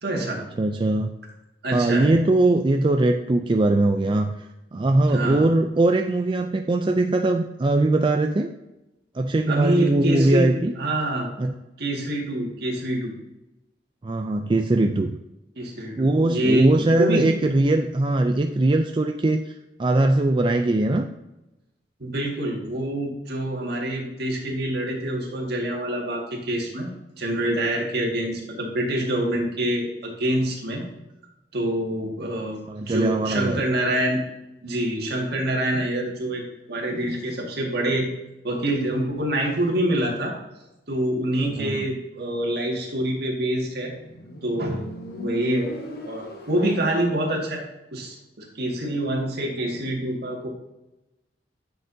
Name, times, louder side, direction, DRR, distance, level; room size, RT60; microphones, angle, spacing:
voice 1, 0.0-0.4 1.6-2.1 5.1-5.5 9.5-10.5 10.8-11.3 11.8-13.1 15.6-17.3 22.0-26.9 27.2-30.9 31.5-34.2 34.6-36.4 36.7-38.1 38.4-40.3 40.9-43.9 44.4-44.9 45.2-45.7 46.1-47.6 47.9-50.5, right 1 dB, 60° right, 0 dB, 1.9 m, -26 dB
voice 2, 0.6-1.1 1.7-4.4 4.7-8.5 9.1-10.7 11.4-11.5 14.0-15.2 16.0-21.1 32.7-33.6 41.4-41.9, right 2 dB, 25° right, 5 dB, 0.4 m, -21 dB
Motorcycle, 43.5-47.0, left 1 dB, 60° left, 1.2 m, -37 dB
9.9 x 6.7 x 2.7 m, 0.97 s
head